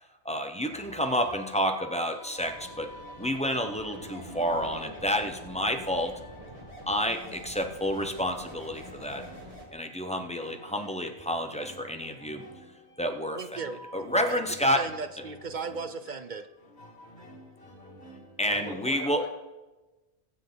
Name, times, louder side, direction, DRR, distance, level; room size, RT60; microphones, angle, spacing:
voice 1, 0.2-2.9 3.2-6.2 6.9-9.2 9.7-12.4 13.0-13.6 13.9-14.9 18.4-19.2, equal, 5° left, 5 dB, 0.9 m, -29 dB
sound 1, 0.7-18.8, left 1 dB, 75° left, 2.6 m, -50 dB
sound 2, 2.4-9.6, equal, 35° right, 2.9 m, -46 dB
voice 2, 13.3-13.8 14.3-16.4, right 4 dB, 50° right, 10 dB, 0.8 m, -36 dB
voice 3, 18.4-19.3, equal, 50° left, -1 dB, 2.3 m, -40 dB
22.0 x 7.4 x 4.0 m, 1.1 s
omnidirectional pair, 1.1 m